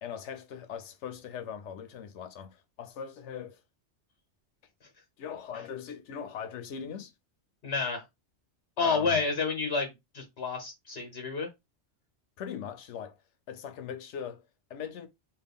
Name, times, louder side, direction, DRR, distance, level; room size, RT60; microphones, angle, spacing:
voice 1, 0.0-3.6 5.2-7.1 8.8-9.2 12.4-13.2 13.5-14.4 14.7-15.1, left 7 dB, 85° left, 0.9 m, -40 dB
voice 2, 7.6-8.0 8.8-11.5, left 4 dB, 65° left, 1.2 m, -30 dB
3.2 x 2.3 x 3.5 m
omnidirectional pair, 1.2 m